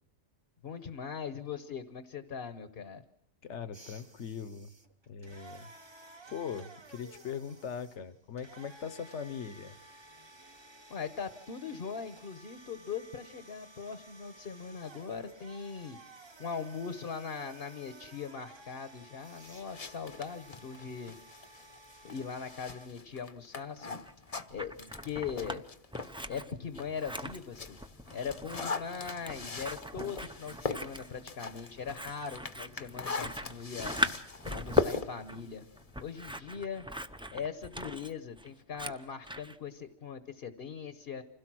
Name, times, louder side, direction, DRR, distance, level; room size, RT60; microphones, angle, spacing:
voice 1, 0.6-3.0 10.9-16.0 16.4-21.1 22.0-24.0 24.5-25.6 26.3-27.8 28.1-34.0 34.5-35.6 36.0-36.8 37.3-41.2, left 6 dB, 55° left, 10 dB, 1.1 m, -40 dB
voice 2, 3.4-4.7 5.1-5.7 6.3-9.8, left 7 dB, 75° left, 13 dB, 1.3 m, -40 dB
sound 1, 3.7-22.9, right 2 dB, 25° right, 1.0 m, -54 dB
sound 2, 19.4-26.2 26.6-36.3, left 4 dB, 35° left, 0.8 m, -39 dB
Scissors, 24.0-25.6 25.9-39.6, equal, 5° right, 0.6 m, -41 dB
26.5 x 17.0 x 6.1 m, 0.77 s
omnidirectional pair, 1.2 m